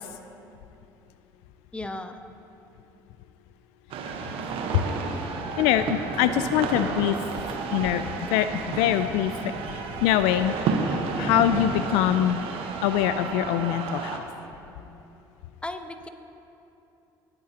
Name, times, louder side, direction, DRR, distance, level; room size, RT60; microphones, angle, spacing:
voice 1, 1.7-2.2 15.6-16.1, left 2 dB, 10° left, 7 dB, 0.9 m, -35 dB
sound 1, 3.9-14.2, right 4 dB, 60° right, 1.1 m, -31 dB
voice 2, 5.6-7.2 7.7-8.0 8.3-8.5 8.8-10.5 10.9-12.4 12.8-14.2, left 12 dB, 75° left, 11 dB, 0.4 m, -24 dB
20.0 x 8.9 x 2.9 m, 2.8 s
hypercardioid pair, 65°, 11 cm